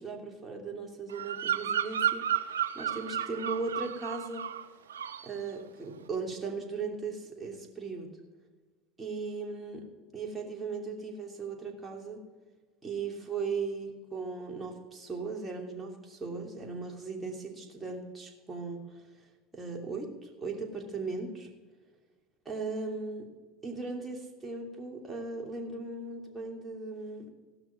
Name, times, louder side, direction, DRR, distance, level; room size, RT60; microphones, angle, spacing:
voice 1, 0.0-4.5 5.2-8.1 9.0-9.9 10.1-12.2 12.8-19.0 19.5-21.5 22.4-23.3 23.6-27.3, right 4 dB, 20° right, 0 dB, 2.9 m, -38 dB
Bird vocalization bird call bird song, 1.1-4.6 4.9-5.3, right 9 dB, 85° right, 0.5 m, -32 dB
16.0 x 6.1 x 6.0 m, 1.4 s
hypercardioid pair, 75°, 0 cm